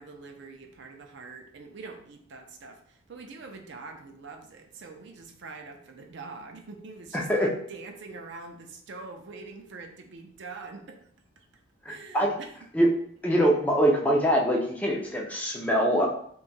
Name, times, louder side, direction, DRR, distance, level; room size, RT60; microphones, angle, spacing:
voice 1, 0.0-2.8 3.1-11.0 11.9-12.5, right 3 dB, 60° right, 3 dB, 0.5 m, -44 dB
voice 2, 7.1-7.5 11.9-12.3 12.7-12.9 13.2-16.1, equal, 5° left, -2 dB, 0.4 m, -23 dB
2.7 x 2.3 x 4.0 m, 0.63 s
head